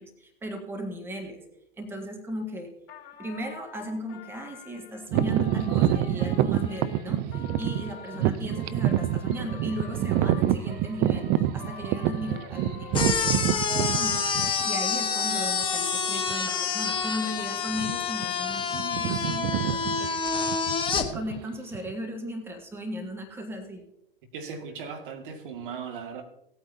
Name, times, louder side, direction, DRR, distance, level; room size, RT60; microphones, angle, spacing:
voice 1, 0.0-1.4 1.8-2.7 3.2-14.3 14.6-20.1 21.0-23.8, equal, 10° right, 1.6 m, -36 dB
Trumpet, 2.9-16.0 16.4-19.0, left 9 dB, 45° left, 2.9 m, -46 dB
sound 1, 5.1-14.9 15.5-15.6 16.3-16.5 16.8-17.0 17.7-18.2 18.5-21.9, right 12 dB, 30° right, 0.5 m, -27 dB
sound 2, 12.9-21.1, left 6 dB, 15° left, 1.2 m, -28 dB
voice 2, 24.3-26.2, right 6 dB, 60° right, 1.9 m, -38 dB
18.0 x 8.9 x 2.7 m
hypercardioid pair, 105°, 29 cm